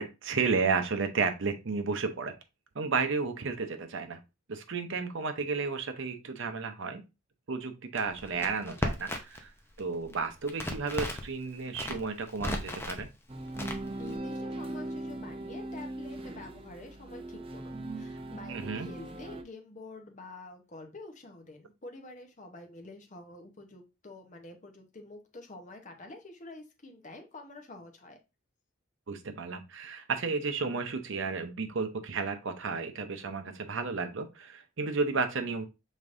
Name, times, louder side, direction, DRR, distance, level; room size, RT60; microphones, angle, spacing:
voice 1, 0.0-2.3 2.7-4.2 4.5-7.0 7.5-9.5 9.8-13.1 18.5-18.9 29.1-35.7, right 4 dB, 65° right, 7 dB, 0.7 m, -32 dB
Crackle, 8.0-9.5 9.7-11.3 11.7-13.0 13.5-14.2, left 1 dB, 10° left, 0.6 m, -35 dB
sound 1, 13.3-19.4, right 1 dB, 30° right, 0.5 m, -39 dB
voice 2, 14.0-28.2, left 2 dB, 40° left, 4 dB, 0.9 m, -48 dB
5.1 x 3.7 x 2.5 m, 0.26 s
head